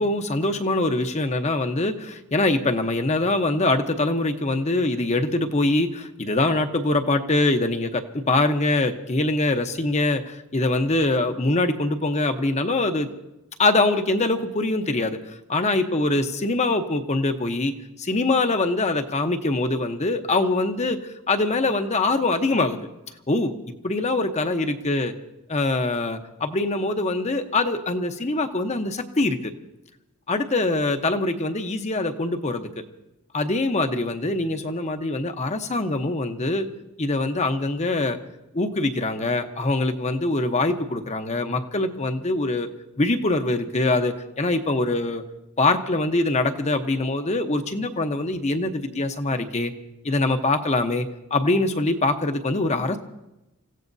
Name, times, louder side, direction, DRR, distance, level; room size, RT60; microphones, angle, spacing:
voice 1, 0.0-13.1 13.6-17.7 18.0-22.9 23.3-23.5 23.8-25.1 25.5-29.5 30.3-32.8 33.3-36.7 37.0-38.2 38.5-42.7 43.0-45.2 45.6-49.7 50.0-53.0, left 2 dB, 30° left, 7 dB, 0.9 m, -23 dB
29.5 x 16.0 x 2.7 m, 0.96 s
head